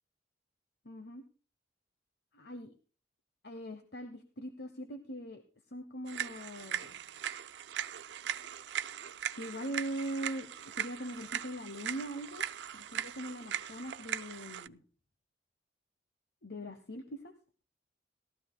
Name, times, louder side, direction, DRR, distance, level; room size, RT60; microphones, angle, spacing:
voice 1, 0.8-1.2 2.3-2.7 3.4-5.4 5.7-7.0 9.3-10.5 10.8-12.5 12.7-14.8 16.4-17.3, right 1 dB, 60° left, 8 dB, 1.0 m, -41 dB
sound 1, 6.1-14.7, right 9 dB, 75° right, 0.4 m, -39 dB
18.5 x 13.0 x 2.2 m, 0.37 s
head